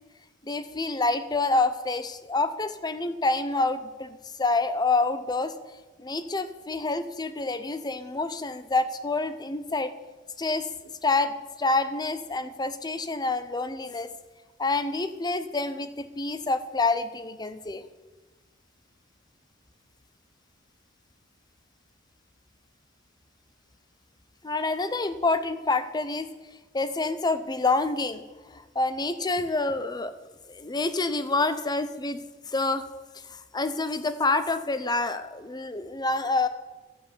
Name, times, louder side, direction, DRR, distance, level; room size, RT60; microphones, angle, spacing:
voice 1, 0.4-5.5 6.0-9.9 10.4-10.7 11.0-14.1 14.6-17.8 24.4-26.3 26.7-28.2 28.5-30.1 30.5-32.8 33.3-36.5, left 3 dB, 20° left, 11 dB, 0.6 m, -27 dB
12.0 x 5.6 x 7.8 m, 1.2 s
head